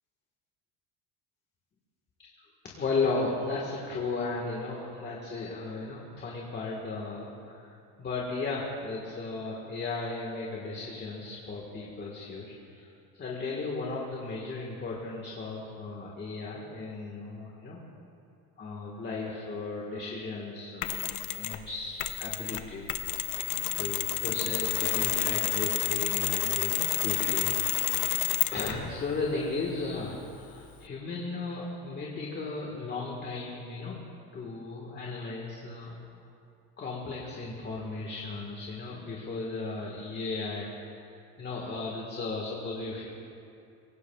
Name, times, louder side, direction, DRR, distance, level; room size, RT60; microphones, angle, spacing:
voice 1, 2.6-7.7 8.0-12.9 13.2-17.8 18.6-22.9 23.8-27.9 28.5-34.1 34.3-36.0 36.8-43.1, left 3 dB, 25° left, -3 dB, 1.6 m, -35 dB
Mechanisms, 20.8-21.6 22.0-28.9, left 15 dB, 50° left, 0.7 m, -29 dB
23.5 x 17.5 x 2.3 m, 2.6 s
cardioid pair, 155°, 39 cm